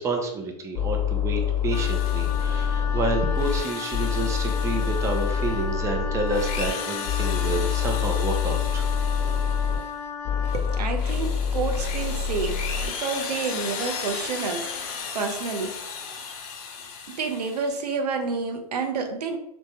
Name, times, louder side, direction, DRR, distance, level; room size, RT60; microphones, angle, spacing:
voice 1, 0.0-8.9, right 3 dB, 15° right, 3 dB, 0.5 m, -29 dB
sound 1, 0.7-3.6 3.9-6.7 7.0-9.8 10.2-12.9, left 7 dB, 15° left, 1.1 m, -26 dB
Drill, 1.6-2.7 3.2-5.6 6.2-9.9 10.4-17.9, left 5 dB, 55° left, 0.7 m, -36 dB
Wind instrument woodwind instrument, 1.7-10.9, left 6 dB, 85° left, 0.4 m, -35 dB
voice 2, 10.5-15.8 17.1-19.4, right 4 dB, 85° right, 5 dB, 0.5 m, -29 dB
3.4 x 2.1 x 2.8 m, 0.81 s
hypercardioid pair, 115°, 20 cm